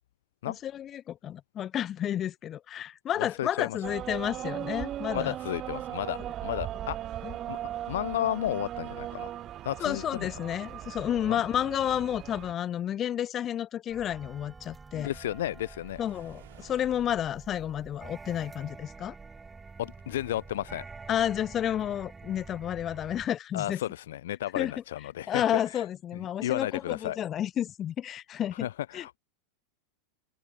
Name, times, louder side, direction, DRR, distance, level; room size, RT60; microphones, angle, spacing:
voice 1, 0.4-5.3 7.2-7.3 9.8-15.1 16.0-19.1 21.1-23.8 24.6-24.7 25.3-28.7 28.9-29.2, left 10 dB, 25° left, 0.7 m, -31 dB
voice 2, 3.2-3.8 5.1-7.0 7.5-7.6 7.9-9.4 9.6-10.3 11.3-11.4 14.9-16.0 19.8-20.8 23.5-25.4 25.7-25.8 26.1-27.2 28.6-29.2, left 13 dB, 80° left, 0.8 m, -33 dB
sound 1, 3.8-12.5, right 12 dB, 30° right, 0.5 m, -38 dB
sound 2, 13.9-23.3, right 4 dB, 10° right, 3.2 m, -47 dB
Waves surf, 15.8-17.3, right 12 dB, 85° right, 4.9 m, -56 dB
open air
supercardioid pair, 155°, 0 cm